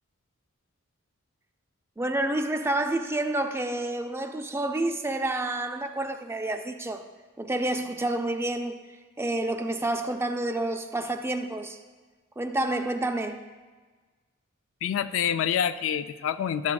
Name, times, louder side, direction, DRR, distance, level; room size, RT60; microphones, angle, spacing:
voice 1, 2.0-7.0 7.4-11.8 12.4-13.4, right 2 dB, 10° right, 6 dB, 0.3 m, -29 dB
voice 2, 14.8-16.7, left 8 dB, 75° left, 12 dB, 0.3 m, -27 dB
11.5 x 7.1 x 2.3 m, 1.4 s
head